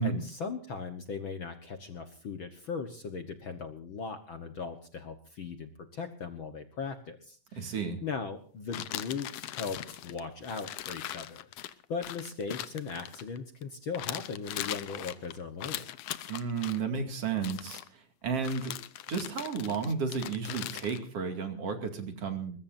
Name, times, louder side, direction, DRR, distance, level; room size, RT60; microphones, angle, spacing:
voice 1, 0.0-15.9, left 5 dB, 50° left, 7 dB, 1.7 m, -38 dB
voice 2, 7.5-8.0 16.3-18.7 19.1-22.6, right 5 dB, 55° right, 6 dB, 3.3 m, -33 dB
sound 1, 8.7-13.6 13.9-16.8 17.3-17.9 18.4-21.0, left 13 dB, 70° left, 1.9 m, -40 dB
22.5 x 21.0 x 2.7 m, 0.42 s
omnidirectional pair, 3.4 m